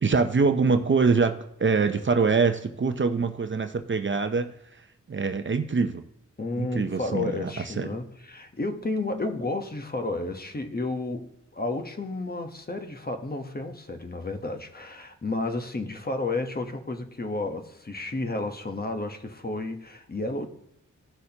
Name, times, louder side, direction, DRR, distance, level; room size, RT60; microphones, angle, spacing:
voice 1, 0.0-4.5 5.1-6.1 6.6-7.9, right 4 dB, 40° right, 0.6 m, -24 dB
voice 2, 6.4-20.5, left 2 dB, 30° left, 1.0 m, -32 dB
16.0 x 6.4 x 2.9 m
wide cardioid pair, 80°, 31 cm